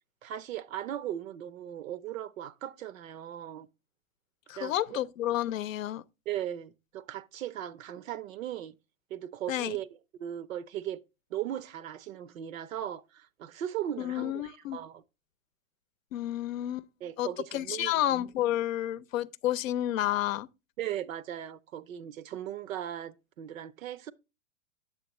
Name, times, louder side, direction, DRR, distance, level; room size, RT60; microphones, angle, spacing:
voice 1, 0.2-3.7 4.5-4.7 6.3-8.7 9.1-9.9 10.2-11.0 11.3-15.0 17.0-17.9 20.8-24.1, right 11 dB, 85° right, 0.7 m, -38 dB
voice 2, 4.5-6.0 9.5-9.8 14.0-14.8 16.1-16.9 17.2-17.3 17.5-20.5, left 13 dB, 75° left, 0.6 m, -30 dB
8.4 x 7.1 x 3.0 m
hypercardioid pair, 125°, 39 cm